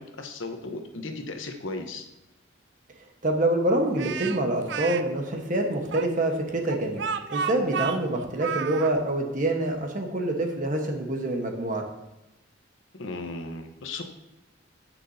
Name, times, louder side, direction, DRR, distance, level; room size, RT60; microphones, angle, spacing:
voice 1, 0.0-2.0 12.9-14.0, left 2 dB, 90° left, 5 dB, 1.0 m, -36 dB
voice 2, 3.2-7.0 7.3-11.8, right 1 dB, 45° right, 3 dB, 1.2 m, -26 dB
Speech, 4.0-5.0 5.9-8.9, right 7 dB, 65° right, 0.5 m, -31 dB
15.5 x 6.0 x 2.8 m, 0.97 s
head